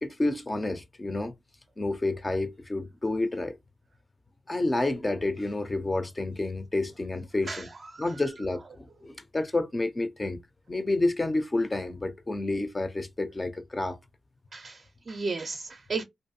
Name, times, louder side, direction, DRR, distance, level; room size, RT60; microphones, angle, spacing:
voice 1, 0.0-1.3 1.8-3.5 4.5-7.7 8.0-10.4 10.7-14.0, left 2 dB, 25° left, 0.5 m, -29 dB
voice 2, 7.5-8.2 14.5-16.0, right 4 dB, 45° right, 0.4 m, -35 dB
2.5 x 2.3 x 2.6 m
wide cardioid pair, 100°, 0 cm